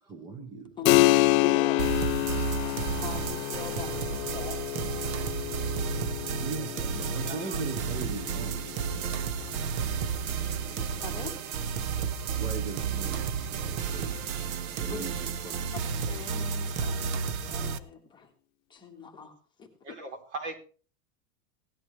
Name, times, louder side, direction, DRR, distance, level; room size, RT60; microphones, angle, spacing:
voice 1, 0.0-0.8 6.4-9.0 12.4-15.7, right 4 dB, 10° right, 0.5 m, -40 dB
Keyboard (musical), 0.9-11.1, left 19 dB, 75° left, 0.7 m, -29 dB
voice 2, 1.4-2.1 2.6-4.6 6.2-6.4 9.4-9.6 10.0-10.2 10.6-11.4 14.9-15.0 16.1-17.2 17.5-18.3 18.7-19.7, left 7 dB, 10° left, 1.6 m, -42 dB
sound 1, 1.8-17.8, right 6 dB, 80° right, 1.2 m, -32 dB
voice 3, 7.2-7.6 19.8-20.6, right 2 dB, 50° right, 3.5 m, -39 dB
17.5 x 10.5 x 3.2 m
supercardioid pair, 170°, 41 cm